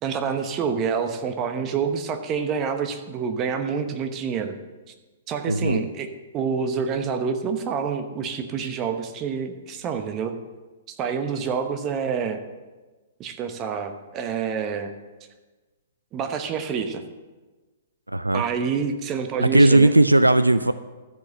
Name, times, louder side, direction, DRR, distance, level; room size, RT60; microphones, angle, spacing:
voice 1, 0.0-4.5 5.3-6.1 6.3-10.3 10.9-12.4 13.2-14.9 16.1-17.0 18.3-19.9, right 6 dB, 30° right, 7 dB, 1.0 m, -27 dB
voice 2, 5.5-5.8 18.1-18.4 19.4-20.7, right 2 dB, 90° right, 14 dB, 0.3 m, -17 dB
13.5 x 5.0 x 6.5 m, 1.3 s
figure-of-eight pair, 115°, 0 cm